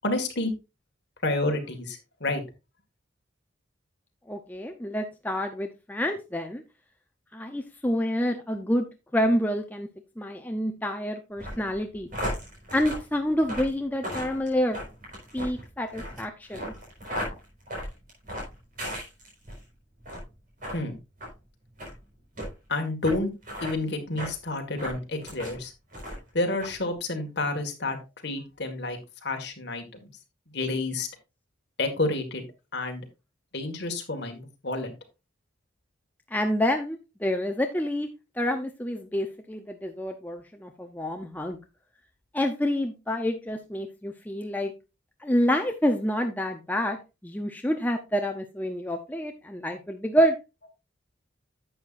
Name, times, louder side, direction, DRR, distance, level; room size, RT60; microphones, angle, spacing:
voice 1, 0.0-0.5 1.2-2.4 20.7-21.0 22.7-23.3 23.6-25.7 26.3-28.0 28.2-30.1 30.5-31.1 31.8-32.4 32.7-33.0 33.5-34.9, left 2 dB, 55° left, 5 dB, 1.8 m, -29 dB
voice 2, 4.3-6.6 7.3-8.9 9.1-9.9 10.2-12.1 12.7-14.8 15.3-16.7 36.3-38.1 38.4-41.6 42.3-44.7 45.2-47.0 47.2-50.4, equal, 10° left, 4 dB, 0.6 m, -28 dB
sound 1, 11.4-19.6 20.0-20.3 20.6-20.8 21.2-21.3 21.8-21.9 22.4-22.5 23.0-23.2 23.4-23.7 24.2-24.3 24.8-25.6 25.9-26.3 26.6-26.7, equal, 40° right, 4.4 m, -36 dB
11.0 x 7.4 x 2.5 m, 0.27 s
head